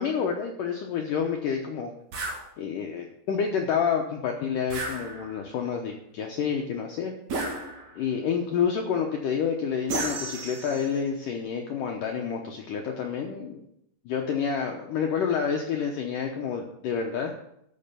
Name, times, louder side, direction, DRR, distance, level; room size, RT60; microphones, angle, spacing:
voice 1, 0.0-1.9 2.6-7.2 8.0-13.6 14.1-17.3, left 7 dB, 75° left, 2 dB, 1.9 m, -29 dB
sound 1, 2.1-2.4 4.7-5.5 7.3-8.1 9.9-11.0, right 2 dB, 50° right, 3.0 m, -33 dB
12.0 x 6.7 x 6.8 m, 0.77 s
omnidirectional pair, 5.1 m